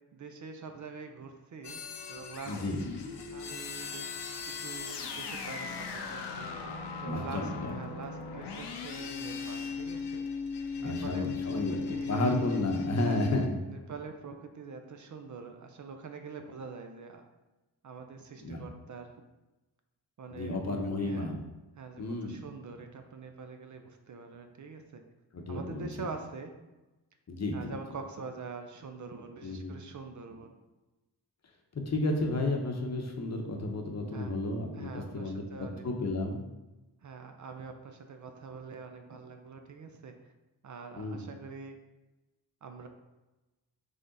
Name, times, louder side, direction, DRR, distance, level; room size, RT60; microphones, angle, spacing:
voice 1, 0.0-1.8 2.1-2.6 3.3-6.7 7.0-10.4 10.8-12.2 13.0-13.2 13.7-17.3 17.8-19.2 20.2-21.4 21.8-25.0 25.5-26.5 27.5-30.6 34.1-34.3 34.7-35.8 37.0-40.3 40.6-41.8 42.6-42.9, right 4 dB, 45° right, 6 dB, 0.5 m, -45 dB
sound 1, 1.6-13.5, left 5 dB, 75° left, 0.6 m, -37 dB
voice 2, 2.5-2.8 7.1-7.7 10.8-11.8 12.1-13.6 18.4-18.6 20.3-21.4 22.0-22.4 25.3-25.9 27.3-27.7 29.4-29.7 31.7-36.5 41.0-41.2, left 2 dB, 40° left, 2 dB, 0.8 m, -32 dB
3.7 x 3.4 x 3.9 m, 1.1 s
cardioid pair, 80°, 41 cm